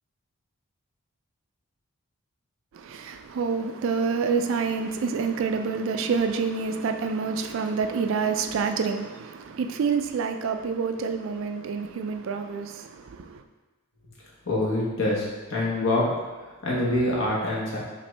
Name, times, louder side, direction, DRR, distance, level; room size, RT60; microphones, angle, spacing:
voice 1, 2.7-13.4, right 5 dB, 60° right, 0.3 m, -27 dB
voice 2, 14.4-16.1 16.6-17.8, left 1 dB, 60° left, 1.3 m, -25 dB
5.7 x 2.6 x 3.3 m
head